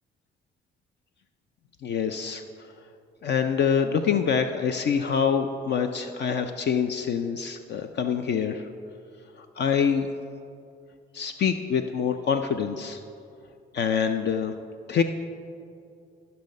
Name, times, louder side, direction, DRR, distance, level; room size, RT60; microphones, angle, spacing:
voice 1, 1.8-2.4 3.2-8.7 9.6-10.1 11.1-13.0 13.7-14.5 14.9-15.0, left 7 dB, 60° left, 7 dB, 0.5 m, -25 dB
14.5 x 5.6 x 5.3 m, 2.4 s
cardioid pair, 90°, 20 cm